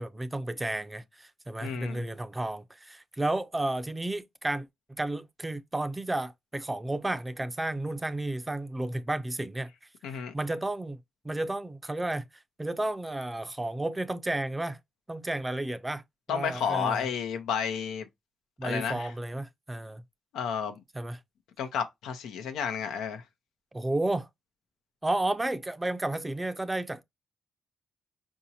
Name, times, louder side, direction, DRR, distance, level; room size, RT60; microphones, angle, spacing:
voice 1, 0.0-9.7 10.1-11.0 11.2-12.3 12.6-14.8 15.1-16.0 16.3-17.1 18.6-20.0 20.9-21.2 23.7-24.3 25.0-27.0, right 2 dB, 20° right, 0.5 m, -32 dB
voice 2, 1.6-2.0 10.0-10.3 16.3-18.1 18.6-19.1 20.3-20.8 21.6-23.2, left 7 dB, 85° left, 0.7 m, -31 dB
4.7 x 2.7 x 2.7 m
supercardioid pair, 55°, 0 cm